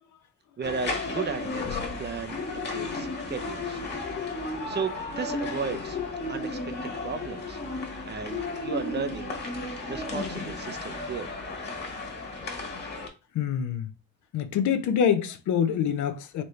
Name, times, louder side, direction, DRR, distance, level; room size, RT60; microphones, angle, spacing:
sound 1, 0.6-13.1, left 3 dB, 35° left, 1.4 m, -34 dB
voice 1, 0.6-3.8 4.2-6.0 6.3-7.6 8.0-9.3 9.9-11.3, right 6 dB, 35° right, 0.6 m, -35 dB
voice 2, 13.3-13.9 14.3-16.4, left 8 dB, 75° left, 0.7 m, -25 dB
4.2 x 3.1 x 3.2 m
cardioid pair, 90°, 30 cm